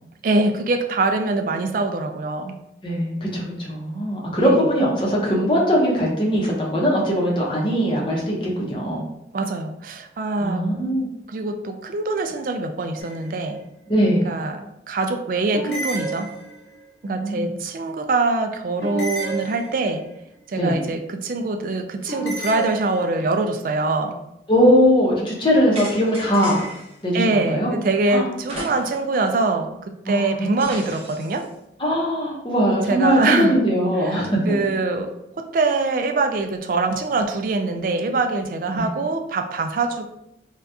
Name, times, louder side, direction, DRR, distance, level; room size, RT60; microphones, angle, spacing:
voice 1, 0.2-2.6 4.4-4.6 9.3-10.7 11.3-13.6 14.2-16.3 17.0-20.1 20.5-24.2 27.1-31.5 32.9-33.6 34.0-40.1, right 3 dB, 50° right, 6 dB, 0.3 m, -24 dB
voice 2, 2.8-9.0 10.4-11.1 13.9-14.3 17.1-17.5 20.5-20.8 24.5-26.6 27.0-27.7 28.1-28.2 30.0-30.7 31.8-34.4 38.7-38.9, equal, 30° left, -3 dB, 0.7 m, -20 dB
sound 1, 13.0-13.6 15.5-16.8 18.8-20.1 22.1-23.4, right 2 dB, 70° left, 0.9 m, -31 dB
sound 2, 25.7-27.0 28.4-29.2 29.5-29.6 30.6-31.4, right 1 dB, 30° right, 0.7 m, -35 dB
2.6 x 2.3 x 3.4 m, 0.85 s
head